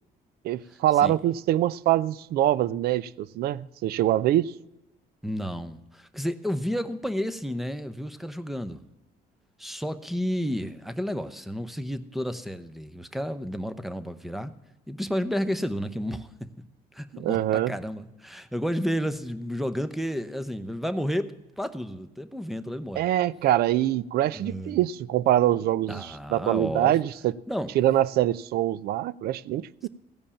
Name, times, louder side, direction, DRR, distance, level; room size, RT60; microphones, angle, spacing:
voice 1, 0.4-4.5 17.1-17.7 23.0-27.3 27.7-29.9, right 13 dB, 65° right, 0.4 m, -24 dB
voice 2, 5.2-8.8 9.6-14.5 14.9-16.5 16.9-23.1 24.3-24.8 25.9-27.0 27.5-27.7, equal, ahead, 0.7 m, -31 dB
15.5 x 5.3 x 8.5 m
cardioid pair, 110°, 17 cm